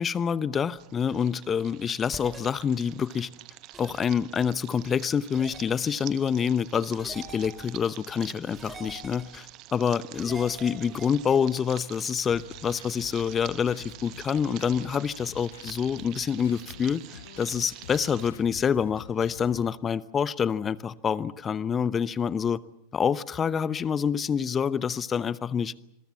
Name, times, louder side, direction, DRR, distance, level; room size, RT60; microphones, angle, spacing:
voice 1, 0.0-3.3 3.8-17.0 17.4-22.6 22.9-25.7, left 7 dB, 20° left, 19 dB, 0.9 m, -27 dB
sound 1, 0.8-18.3, right 17 dB, 40° right, 1.0 m, -47 dB
sound 2, 2.1-2.4 3.7-4.0 5.3-5.6 6.9-7.8 8.5-9.4 10.1-11.4, right 3 dB, 10° right, 4.0 m, -43 dB
sound 3, 12.3-19.7, left 8 dB, 60° left, 1.7 m, -48 dB
27.5 x 22.5 x 7.2 m, 0.76 s
figure-of-eight pair, 90°, 0 cm